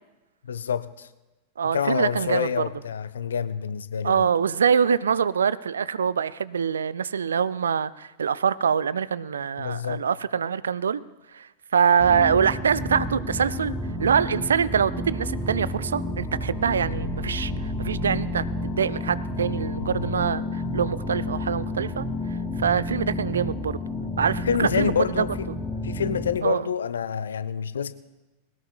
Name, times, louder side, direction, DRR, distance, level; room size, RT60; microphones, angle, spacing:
voice 1, 0.4-1.1 1.7-4.2 9.6-10.0 19.8-20.3 24.4-25.5 25.8-27.9, left 7 dB, 70° left, 15 dB, 0.6 m, -27 dB
voice 2, 1.6-2.6 4.0-11.0 11.3-11.5 11.7-13.7 14.0-20.4 20.7-22.1 22.6-23.8 24.2-24.9 25.2-25.3 26.4-26.7, right 7 dB, 70° right, 18 dB, 0.4 m, -24 dB
sound 1, 12.0-26.4, left 1 dB, 5° left, 1.9 m, -31 dB
21.0 x 18.5 x 2.3 m, 1.1 s
figure-of-eight pair, 90°, 0 cm